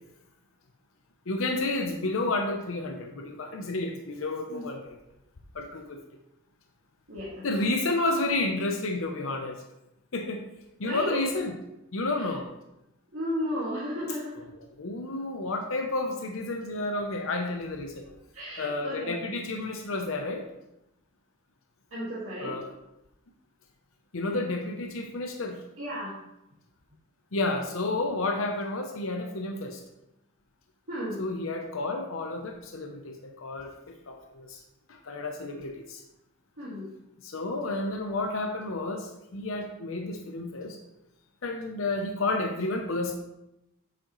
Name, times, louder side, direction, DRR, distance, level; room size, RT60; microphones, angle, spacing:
voice 1, 1.3-5.0 5.5-6.0 7.4-9.6 10.1-10.4 10.8-11.6 11.9-12.5 14.6-18.1 18.6-20.5 22.4-22.7 24.1-25.6 27.3-29.8 31.2-34.6 34.9-36.0 37.2-40.8 41.4-43.2, left 2 dB, 70° left, 4 dB, 0.7 m, -31 dB
voice 2, 7.1-7.7 10.8-11.2 13.1-14.4 18.0-19.2 21.9-22.6 25.8-26.2 30.9-31.2 36.6-36.9, equal, 65° right, -9 dB, 2.0 m, -34 dB
8.5 x 6.4 x 3.1 m, 0.88 s
head